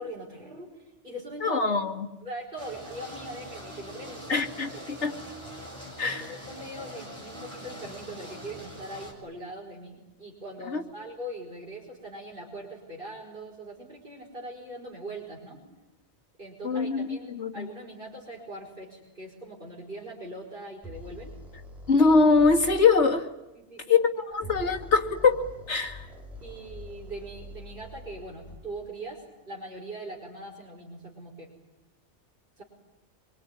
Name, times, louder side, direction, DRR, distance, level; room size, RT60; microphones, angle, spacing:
voice 1, 0.0-1.6 2.2-4.4 4.9-5.2 6.0-15.6 16.4-21.3 23.6-24.0 24.6-24.7 26.4-31.5 32.6-32.7, right 1 dB, 50° right, -3 dB, 5.5 m, -41 dB
voice 2, 1.4-2.1 4.3-5.1 6.0-6.3 10.7-10.8 16.6-17.7 21.9-23.3 23.9-25.4 25.7-26.1, left 4 dB, 75° left, 3 dB, 2.5 m, -23 dB
sound 1, 2.6-9.1, equal, 25° right, 6.0 m, -43 dB
sound 2, 20.8-22.8 24.3-28.7, left 1 dB, ahead, 6.2 m, -44 dB
25.5 x 23.5 x 9.8 m, 0.96 s
omnidirectional pair, 1.2 m